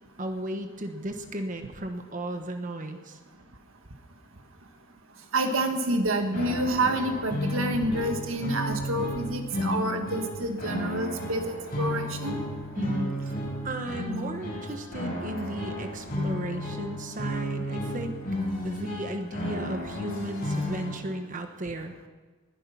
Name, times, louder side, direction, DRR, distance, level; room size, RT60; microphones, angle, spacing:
voice 1, 0.2-3.2 12.8-18.2 18.6-21.9, right 1 dB, 40° right, 6 dB, 1.3 m, -35 dB
voice 2, 5.3-12.4, right 1 dB, 70° right, 5 dB, 1.7 m, -28 dB
sound 1, 6.3-20.9, equal, 40° left, 6.1 m, -33 dB
20.0 x 10.5 x 5.7 m, 1.3 s
head